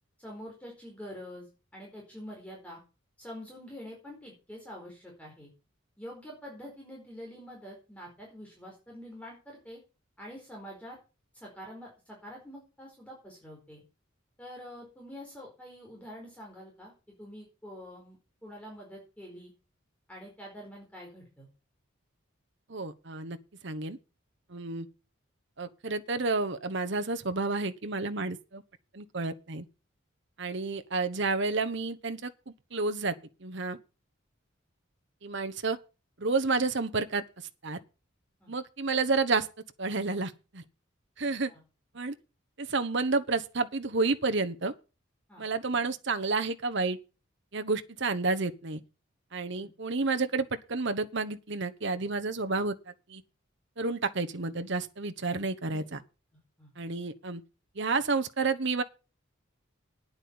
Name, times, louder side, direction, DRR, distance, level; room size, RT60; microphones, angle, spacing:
voice 1, 0.2-1.5 1.7-2.8 3.2-5.5 6.0-9.8 10.2-11.0 11.3-13.8 14.4-18.2 18.4-19.5 20.1-21.5 38.4-38.5 41.5-41.6 45.3-45.4 49.5-49.7 55.7-55.8 56.6-56.7, equal, 5° left, 4.6 m, -46 dB
voice 2, 22.7-23.4 23.6-24.0 24.5-24.9 25.6-28.6 28.9-29.6 30.4-33.1 33.4-33.8 35.2-35.8 36.2-37.2 37.6-37.8 38.5-39.5 39.8-40.6 41.2-41.5 41.9-42.1 42.6-44.7 45.4-47.0 47.5-48.8 49.3-52.7 53.1-53.2 53.8-56.0 56.8-57.4 57.8-58.8, right 3 dB, 60° right, 1.1 m, -30 dB
9.6 x 8.8 x 7.0 m
head